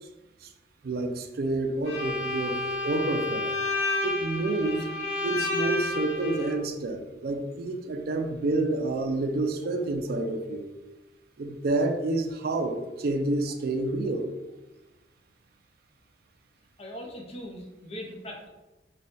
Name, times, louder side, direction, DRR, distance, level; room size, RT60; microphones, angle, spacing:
voice 1, 0.8-3.5 4.0-4.9 5.2-10.6 11.4-14.3, right 2 dB, 55° right, 5 dB, 0.4 m, -29 dB
Bowed string instrument, 1.8-6.5, left 2 dB, 85° left, 1.2 m, -30 dB
voice 2, 16.8-18.5, equal, 35° left, 0 dB, 0.6 m, -40 dB
3.2 x 2.2 x 4.1 m, 1.1 s
head